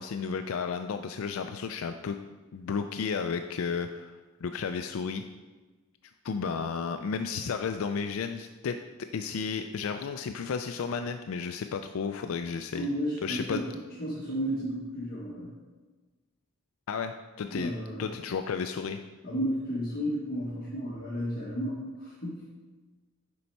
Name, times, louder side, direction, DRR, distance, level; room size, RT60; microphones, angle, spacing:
voice 1, 0.0-2.2 2.5-5.2 6.2-8.8 9.1-12.9 13.2-13.6 16.9-17.7 18.0-19.0, left 5 dB, 75° left, 8 dB, 0.4 m, -33 dB
voice 2, 12.7-13.7 14.0-15.5 17.5-18.1 19.2-22.5, equal, 45° left, -8 dB, 1.5 m, -33 dB
6.9 x 5.3 x 4.5 m, 1.3 s
head